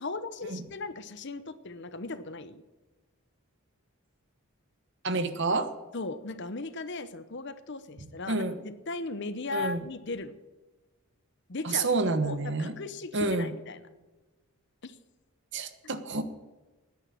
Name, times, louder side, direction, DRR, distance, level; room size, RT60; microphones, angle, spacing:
voice 1, 0.0-2.6 5.9-10.4 11.5-13.8 14.8-15.0, left 3 dB, 50° left, 13 dB, 0.9 m, -37 dB
voice 2, 5.0-5.7 8.3-8.5 9.5-9.8 11.6-12.8 13.1-13.5 15.5-16.2, right 3 dB, 55° right, 10 dB, 1.2 m, -28 dB
10.5 x 9.9 x 8.7 m, 1.2 s
head